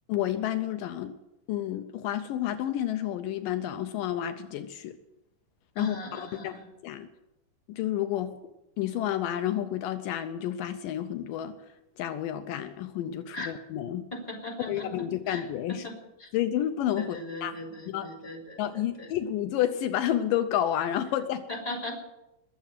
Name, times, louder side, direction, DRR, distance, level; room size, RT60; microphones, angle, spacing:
voice 1, 0.1-1.2 1.5-4.9 5.8-7.1 7.7-8.4 8.8-11.6 12.0-14.1 14.7-15.9 16.3-17.5 17.9-18.1 18.6-21.5, left 11 dB, 80° left, 9 dB, 2.3 m, -30 dB
voice 2, 5.8-6.6 13.3-13.5 14.1-15.4 15.7-15.9 16.2-16.3 17.0-19.1 21.5-21.9, left 1 dB, 10° left, -2 dB, 3.2 m, -39 dB
21.0 x 7.5 x 7.5 m, 0.92 s
omnidirectional pair, 4.0 m